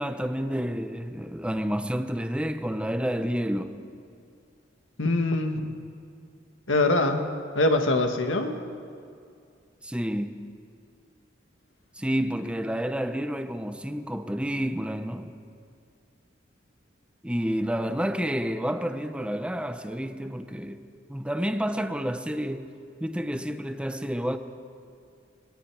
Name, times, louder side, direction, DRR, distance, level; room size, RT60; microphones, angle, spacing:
voice 1, 0.0-3.8 9.8-10.3 12.0-15.3 17.2-20.8 21.1-22.7 23.0-24.4, equal, 5° right, 0.8 m, -29 dB
voice 2, 5.0-5.7 6.7-7.3 7.5-8.6, left 2 dB, 85° left, 1.8 m, -23 dB
25.5 x 21.5 x 4.8 m
head